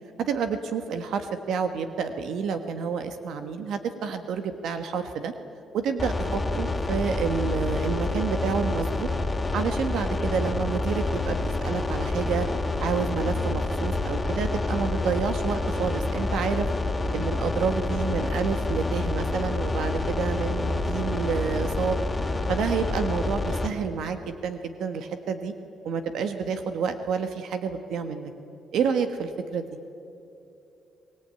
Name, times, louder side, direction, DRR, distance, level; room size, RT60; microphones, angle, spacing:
voice 1, 0.2-5.3 5.7-9.1 9.5-12.5 12.8-16.7 17.1-22.1 22.5-25.5 25.8-28.3 28.7-29.6, right 6 dB, 75° right, 8 dB, 1.4 m, -29 dB
sound 1, 6.0-23.7, left 2 dB, 20° left, 2.5 m, -28 dB
24.0 x 19.5 x 9.0 m, 2.8 s
cardioid pair, 90°, 0 cm